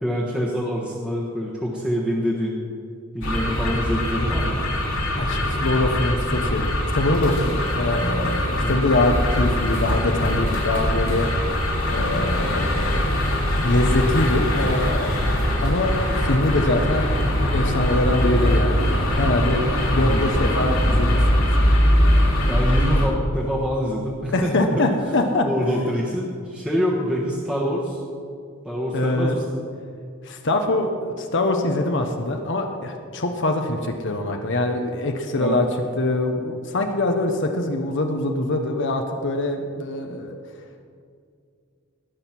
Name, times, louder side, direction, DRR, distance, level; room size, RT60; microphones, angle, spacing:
voice 1, 0.0-2.6 3.1-4.6 8.6-8.9 20.0-20.3 22.5-24.9 25.4-28.0 28.6-29.4 35.3-35.6, equal, 5° right, -5 dB, 1.3 m, -25 dB
sound 1, 3.2-23.1, equal, 80° left, 3.1 m, -22 dB
voice 2, 5.2-11.3 11.9-13.2 13.6-15.2 15.6-17.1 17.5-21.6 24.3-25.5 28.9-29.3 30.2-35.6 36.0-40.4, left 2 dB, 60° left, 4 dB, 0.9 m, -23 dB
19.0 x 6.4 x 5.9 m, 2.3 s
head